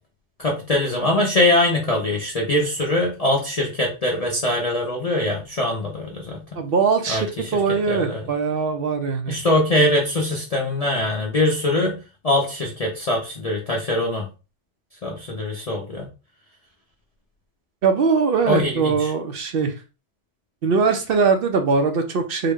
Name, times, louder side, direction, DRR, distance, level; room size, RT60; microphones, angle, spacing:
voice 1, 0.4-6.6 7.1-7.5 7.9-8.3 9.3-14.3 15.0-16.1 18.4-19.1, left 1 dB, 40° left, -2 dB, 0.6 m, -22 dB
voice 2, 6.5-9.4 17.8-19.7 20.6-22.5, right 5 dB, 60° right, 6 dB, 0.7 m, -21 dB
3.8 x 2.1 x 3.5 m, 0.31 s
omnidirectional pair, 1.2 m